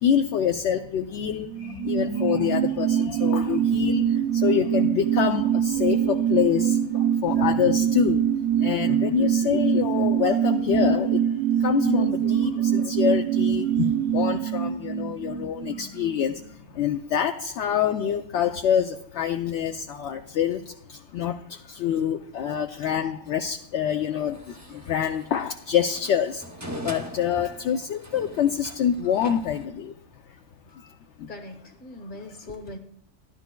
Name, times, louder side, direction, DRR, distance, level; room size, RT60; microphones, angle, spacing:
voice 1, 0.0-8.3 8.6-26.5 26.8-29.9 30.7-31.3, left 8 dB, 70° left, 5 dB, 0.8 m, -26 dB
sound 1, 1.4-16.5 16.8-16.9, right 9 dB, 80° right, 1.0 m, -24 dB
sound 2, 24.3-29.6, equal, 20° right, 0.6 m, -42 dB
voice 2, 31.3-32.8, left 2 dB, 40° left, 5 dB, 1.4 m, -40 dB
14.0 x 11.0 x 2.2 m, 0.64 s
omnidirectional pair, 1.3 m